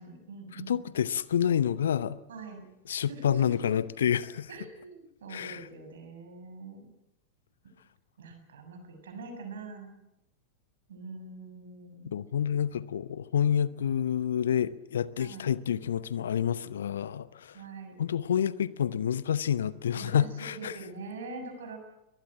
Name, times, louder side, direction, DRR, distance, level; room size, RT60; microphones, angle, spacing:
voice 1, 0.0-0.8 2.3-2.6 3.1-3.7 4.5-6.9 8.2-9.9 10.9-12.1 15.2-15.5 17.5-18.0 19.9-21.8, right 3 dB, 60° right, 7.2 m, -44 dB
voice 2, 0.5-2.2 2.9-4.5 5.3-5.7 12.1-17.6 18.0-20.8, left 9 dB, 65° left, 0.9 m, -28 dB
24.0 x 19.5 x 7.7 m
figure-of-eight pair, 90°, 0 cm